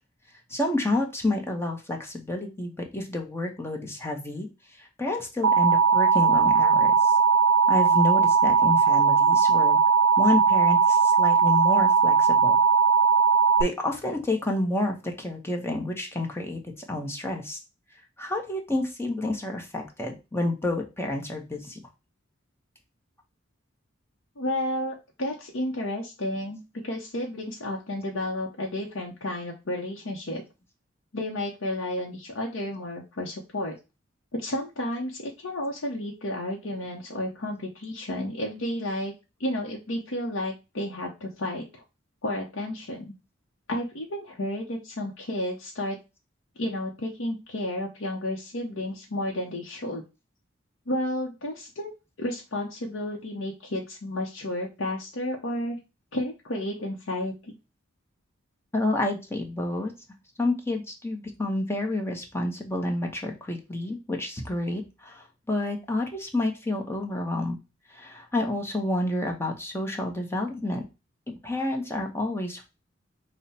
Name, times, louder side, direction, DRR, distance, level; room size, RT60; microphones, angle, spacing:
voice 1, 0.5-4.5 4.8-7.1 7.7-9.8 10.2-12.5 13.6-16.6 16.9-17.6 18.2-21.8 58.7-59.9 60.4-67.6 67.9-70.8 71.3-72.7, left 1 dB, 15° left, 1 dB, 0.9 m, -29 dB
Alarm, 5.4-13.6, right 5 dB, 70° right, 0.3 m, -19 dB
voice 2, 24.4-30.4 31.1-33.8 34.3-39.1 39.4-41.8 42.2-43.1 43.7-46.0 46.6-50.0 50.9-51.9 52.2-55.8 56.1-57.6, left 1 dB, 80° left, -1 dB, 0.8 m, -32 dB
5.6 x 2.2 x 4.1 m, 0.27 s
head